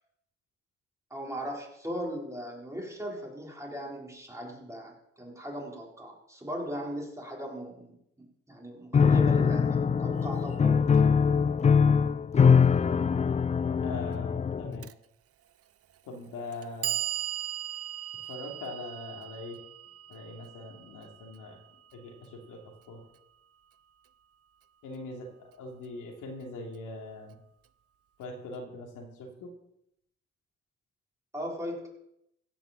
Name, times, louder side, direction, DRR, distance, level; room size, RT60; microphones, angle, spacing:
voice 1, 1.1-11.2 31.3-31.9, equal, 10° right, -2 dB, 4.1 m, -38 dB
Piano, 8.9-14.9, left 6 dB, 25° left, 0.4 m, -23 dB
voice 2, 13.8-14.9 16.0-17.0 18.2-19.6 20.1-21.6 21.9-23.0 24.8-25.3 25.6-27.4 28.2-29.5, left 2 dB, 90° left, 1 dB, 2.9 m, -42 dB
Clock, 14.8-14.9 15.9-16.0 16.5-22.6, right 12 dB, 50° right, 0.6 m, -38 dB
16.0 x 6.0 x 7.4 m, 0.79 s
cardioid pair, 90°, 30 cm